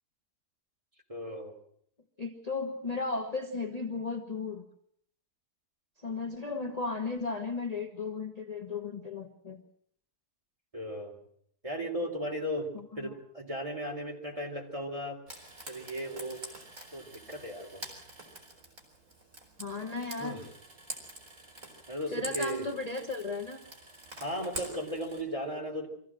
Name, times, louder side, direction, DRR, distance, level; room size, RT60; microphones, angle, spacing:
voice 1, 1.1-1.5 10.7-11.1 11.6-15.2 15.7-16.4 16.9-17.8 20.2-20.4 21.9-22.6 24.2-25.9, equal, 20° right, 0 dB, 3.6 m, -36 dB
voice 2, 2.2-4.6 6.0-9.6 12.7-13.2 19.6-20.4 22.1-23.6, left 4 dB, 25° left, 3 dB, 1.3 m, -35 dB
Frying (food), 15.3-25.2, right 2 dB, 50° right, 4.8 m, -46 dB
24.5 x 15.0 x 7.6 m, 0.68 s
omnidirectional pair, 1.6 m